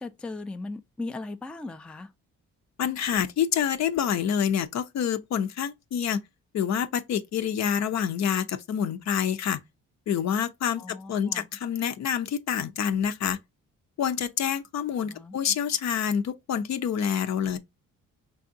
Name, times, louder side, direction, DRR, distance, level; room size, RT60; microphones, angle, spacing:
voice 1, 0.0-2.1 10.8-11.5 15.0-15.4, left 3 dB, 5° left, 0.4 m, -38 dB
voice 2, 2.8-6.2 6.5-9.6 10.1-13.4 14.0-17.6, left 8 dB, 60° left, 0.6 m, -27 dB
4.7 x 3.4 x 2.6 m
cardioid pair, 90°, 30 cm